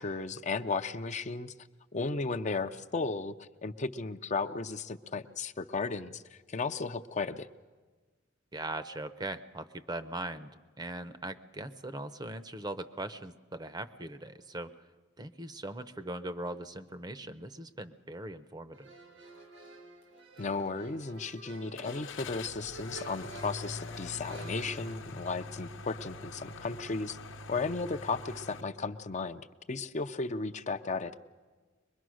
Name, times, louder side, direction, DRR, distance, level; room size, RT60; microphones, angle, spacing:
voice 1, 0.0-1.5 1.9-7.5 20.4-27.2 27.5-31.3, left 4 dB, 40° left, 8 dB, 0.6 m, -35 dB
voice 2, 8.5-10.5 10.8-14.7 15.2-18.9, right 2 dB, 20° right, 12 dB, 0.7 m, -40 dB
sound 1, 18.7-24.9, right 2 dB, 90° right, 5.0 m, -49 dB
Car / Engine starting, 21.7-28.6, left 3 dB, 85° left, 0.9 m, -44 dB
23.0 x 21.0 x 6.3 m, 1.4 s
head